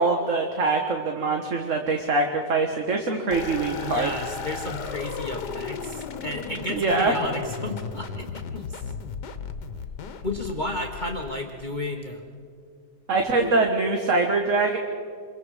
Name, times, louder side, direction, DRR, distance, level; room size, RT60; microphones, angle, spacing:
voice 1, 0.0-4.1 6.7-7.1 13.1-14.8, right 3 dB, 50° right, 3 dB, 1.7 m, -23 dB
sound 1, 3.3-11.8, left 5 dB, 80° left, 1.7 m, -35 dB
voice 2, 3.8-8.8 10.2-12.2 13.4-13.5, left 1 dB, 30° left, 1 dB, 1.6 m, -32 dB
28.0 x 22.5 x 5.1 m, 2.1 s
omnidirectional pair, 1.8 m